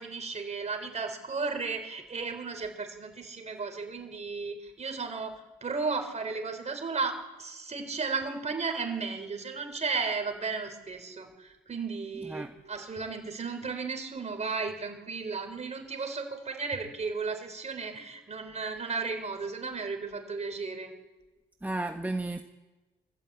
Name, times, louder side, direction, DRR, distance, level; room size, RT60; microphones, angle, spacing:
voice 1, 0.0-20.9, right 4 dB, 35° right, 5 dB, 4.2 m, -34 dB
voice 2, 12.1-12.5 21.6-22.4, right 2 dB, 10° right, 5 dB, 1.1 m, -33 dB
24.5 x 14.5 x 8.6 m, 1.2 s
cardioid pair, 90°, 20 cm